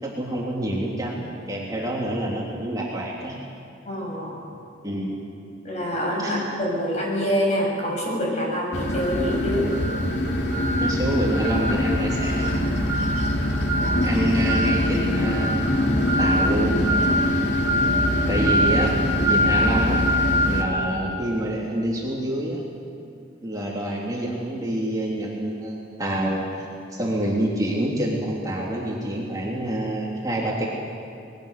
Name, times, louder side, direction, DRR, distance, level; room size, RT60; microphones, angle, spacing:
voice 1, 0.0-3.3 4.8-5.2 6.2-6.4 10.6-12.6 14.0-15.8 16.2-16.8 18.3-19.0 19.2-20.0 20.5-22.6 23.4-30.7, right 1 dB, 20° right, -4 dB, 3.1 m, -27 dB
voice 2, 3.9-4.4 5.6-9.7, equal, 35° left, -2 dB, 7.1 m, -26 dB
sound 1, 8.7-20.6, equal, 60° left, 2.9 m, -22 dB
27.0 x 21.0 x 6.7 m, 2.4 s
head